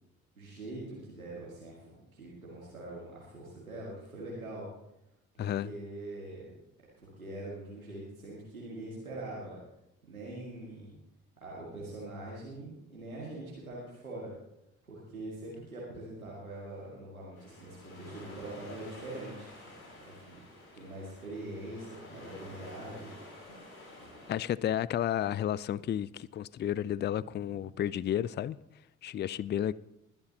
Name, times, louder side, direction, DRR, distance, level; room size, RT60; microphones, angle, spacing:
voice 1, 0.4-4.7 5.3-6.5 7.0-9.6 10.0-10.9 11.4-14.3 14.8-19.5 20.0-20.4 20.7-23.1 27.5-27.6, right 2 dB, 90° right, 2.1 m, -43 dB
voice 2, 5.4-5.7 24.3-28.6 29.0-29.7, left 11 dB, 25° left, 0.4 m, -32 dB
sound 1, 17.3-24.3, left 1 dB, 80° left, 2.8 m, -50 dB
20.5 x 12.0 x 2.9 m
figure-of-eight pair, 40°, 41 cm